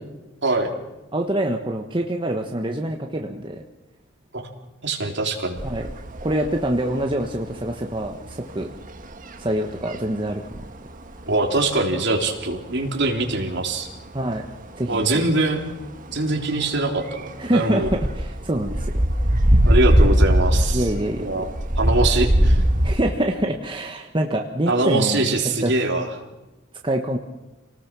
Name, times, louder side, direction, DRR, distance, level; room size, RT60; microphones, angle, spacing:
voice 1, 0.4-0.7 4.3-4.4 4.8-5.6 11.3-13.9 14.9-15.6 16.1-17.9 19.7-20.9 21.2-21.5 21.8-22.6 24.7-26.1, right 2 dB, 55° right, 1 dB, 3.6 m, -23 dB
voice 2, 1.1-3.6 5.6-5.9 6.2-8.7 9.4-10.6 14.1-14.4 14.8-15.2 17.4-19.0 20.7-21.5 22.8-25.4 25.6-25.7 26.8-27.2, right 1 dB, 25° right, 2 dB, 1.3 m, -25 dB
sound 1, 5.6-23.0, equal, 40° right, 1.6 m, -22 dB
28.5 x 19.0 x 6.2 m, 1.1 s
head